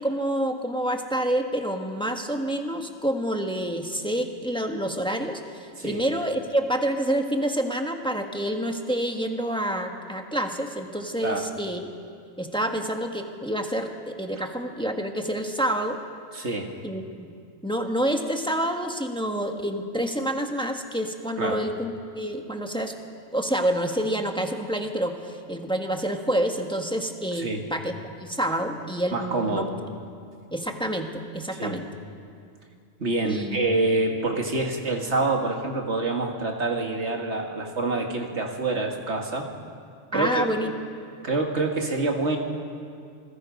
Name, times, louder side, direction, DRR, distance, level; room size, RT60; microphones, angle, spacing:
voice 1, 0.0-11.8 12.4-16.0 16.8-17.3 17.6-23.0 23.3-27.9 28.2-29.7 30.5-31.9 33.2-33.6 40.1-40.7, right 1 dB, 5° left, 4 dB, 1.3 m, -28 dB
voice 2, 16.3-16.7 21.4-21.6 27.3-27.6 29.1-29.7 31.6-31.8 33.0-39.5 40.1-40.4 41.2-42.4, right 2 dB, 60° right, 2 dB, 2.2 m, -26 dB
27.0 x 21.0 x 5.3 m, 2.3 s
omnidirectional pair, 1.3 m